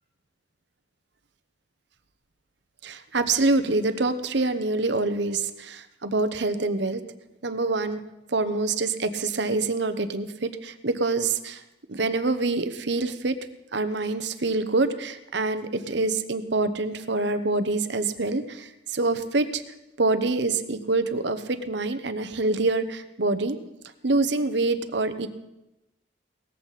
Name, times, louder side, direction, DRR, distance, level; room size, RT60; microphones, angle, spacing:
voice 1, 2.8-7.0 7.4-8.0 8.3-11.6 11.9-13.4 13.7-19.6 20.0-23.6 24.0-25.3, right 3 dB, 65° right, 11 dB, 1.0 m, -26 dB
18.5 x 14.5 x 4.2 m, 0.94 s
head